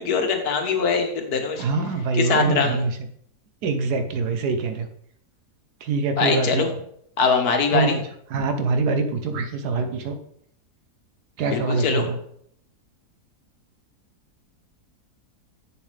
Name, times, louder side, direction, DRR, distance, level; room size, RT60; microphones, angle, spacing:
voice 1, 0.0-1.6 2.2-2.8 6.2-6.7 7.2-8.0 11.5-12.1, left 5 dB, 70° left, 5 dB, 1.6 m, -22 dB
voice 2, 1.6-3.0 3.6-4.9 5.8-6.7 7.7-8.0 8.3-10.2 11.4-12.2, right 4 dB, 75° right, 7 dB, 1.4 m, -24 dB
7.7 x 7.0 x 3.3 m, 0.68 s
omnidirectional pair, 1.7 m